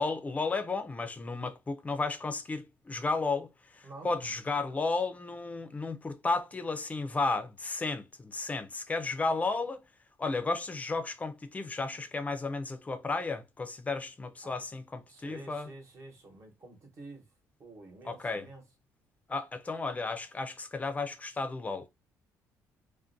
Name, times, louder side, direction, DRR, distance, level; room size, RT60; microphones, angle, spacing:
voice 1, 0.0-9.8 10.2-15.7 18.0-18.4 19.3-21.9, left 3 dB, 20° left, 0.5 m, -33 dB
voice 2, 3.8-4.1 14.4-14.6 15.1-17.3 17.6-18.6, right 2 dB, 45° right, 1.0 m, -49 dB
2.4 x 2.1 x 2.6 m
cardioid pair, 105°, 7 cm